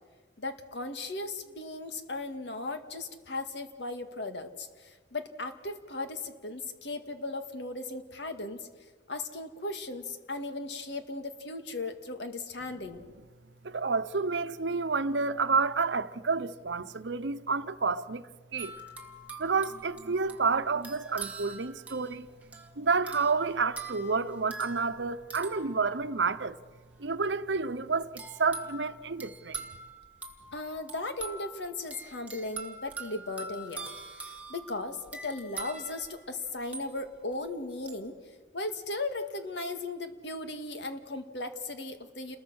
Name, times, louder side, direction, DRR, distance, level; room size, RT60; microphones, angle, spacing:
voice 1, 0.4-8.7 9.1-13.1 30.5-33.9 34.2-38.1 38.5-42.4, left 2 dB, 75° left, 2.0 m, -37 dB
voice 2, 13.6-18.8 19.4-22.3 22.8-26.6 27.0-29.6, right 4 dB, 80° right, 0.9 m, -29 dB
song alarm, 18.6-26.5 28.2-37.4 37.9-38.1, right 3 dB, 10° right, 2.2 m, -44 dB
29.0 x 21.0 x 6.4 m
head